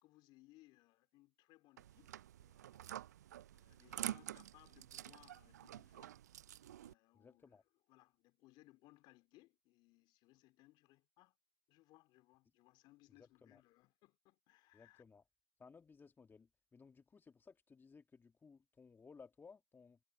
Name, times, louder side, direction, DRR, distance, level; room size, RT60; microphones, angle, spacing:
voice 1, 0.0-3.0 3.5-6.2 6.8-7.6 7.9-11.4 11.7-15.0, left 19 dB, 60° left, 2.9 m, -67 dB
sound 1, 1.8-6.9, right 12 dB, 80° right, 0.4 m, -48 dB
voice 2, 7.1-7.6 13.2-13.6 14.7-15.2 15.6-20.0, left 5 dB, 25° left, 1.5 m, -61 dB
hypercardioid pair, 70°, 9 cm